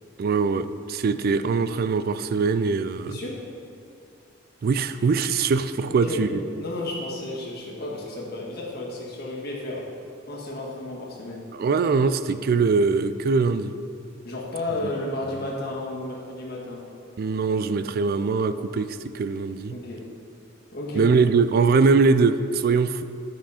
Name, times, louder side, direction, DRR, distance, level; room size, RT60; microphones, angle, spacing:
voice 1, 0.2-3.2 4.6-6.4 11.5-13.7 17.2-19.8 20.9-23.0, right 4 dB, 50° right, 12 dB, 0.3 m, -22 dB
voice 2, 3.1-3.4 5.9-9.9 10.3-11.5 14.2-16.9 19.7-20.1 20.7-21.1, left 1 dB, 55° left, -3 dB, 1.7 m, -32 dB
10.0 x 6.1 x 4.2 m, 2.4 s
head